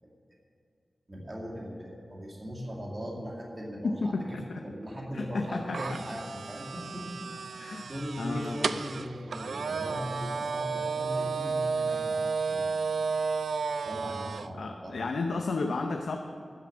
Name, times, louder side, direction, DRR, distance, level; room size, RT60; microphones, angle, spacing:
voice 1, 1.1-13.1 13.8-15.1, equal, 35° right, -2 dB, 2.2 m, -39 dB
voice 2, 3.8-4.6 5.1-5.8 7.6-7.9 8.2-8.8 14.5-16.2, left 3 dB, 85° left, 4 dB, 0.7 m, -32 dB
sound 1, 5.7-14.5, right 5 dB, 90° right, 0.3 m, -32 dB
12.5 x 6.9 x 7.7 m, 2.5 s
wide cardioid pair, 65°, 0 cm